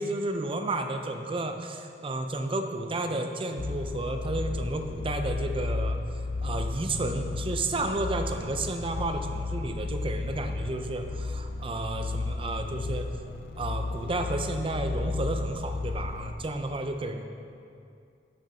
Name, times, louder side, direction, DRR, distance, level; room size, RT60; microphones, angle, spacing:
voice 1, 0.0-6.0 6.4-13.1 13.6-17.2, right 2 dB, 30° right, 6 dB, 0.6 m, -32 dB
sound 1, 3.6-16.3, left 3 dB, 60° left, 0.5 m, -33 dB
8.7 x 6.5 x 5.5 m, 2.4 s
head